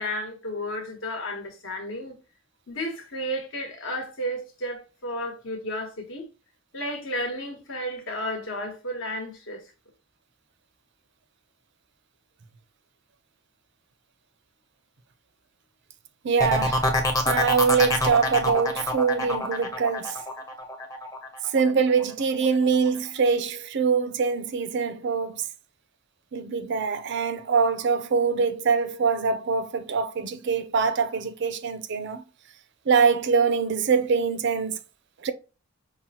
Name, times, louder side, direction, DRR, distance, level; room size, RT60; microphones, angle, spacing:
voice 1, 0.0-2.1 2.7-6.3 6.7-9.6, equal, 70° left, 1.2 m, -32 dB
voice 2, 16.2-16.9 17.3-20.2 21.5-25.5 26.3-32.2 32.9-34.8 35.2-35.3, right 5 dB, 60° right, 0.5 m, -24 dB
sound 1, 16.4-22.0 22.4-22.9, left 1 dB, 15° left, 0.6 m, -26 dB
5.7 x 2.1 x 2.7 m
head